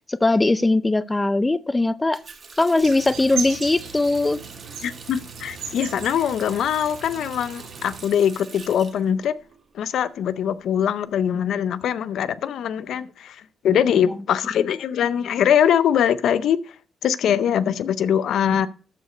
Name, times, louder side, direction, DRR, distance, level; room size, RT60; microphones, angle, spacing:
voice 1, 0.1-2.2 2.6-4.4, left 2 dB, 15° left, 0.5 m, -20 dB
Water tap faucet, 2.1-9.9 10.2-11.2, right 5 dB, 45° right, 1.8 m, -43 dB
sound 1, 2.8-8.0, right 7 dB, 85° right, 3.9 m, -36 dB
voice 2, 4.8-9.3 9.7-16.7 17.0-18.7, left 9 dB, 75° left, 0.5 m, -22 dB
13.0 x 5.1 x 5.0 m
cardioid pair, 95°, 0 cm